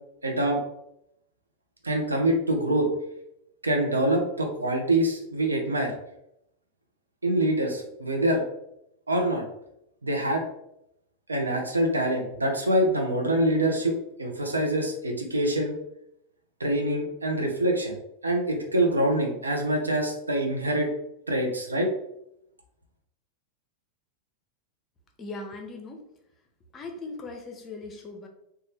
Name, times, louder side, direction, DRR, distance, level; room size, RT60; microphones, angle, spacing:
voice 1, 0.2-0.6 1.8-2.9 3.6-5.9 7.2-8.4 9.1-9.4 10.0-10.4 11.3-15.7 16.6-17.9 18.2-20.9 21.3-21.9, right 1 dB, 80° right, 3 dB, 0.5 m, -25 dB
voice 2, 25.2-26.1 26.7-28.3, left 3 dB, 25° left, 3 dB, 0.6 m, -39 dB
3.1 x 2.2 x 3.0 m, 0.79 s
figure-of-eight pair, 90°, 0 cm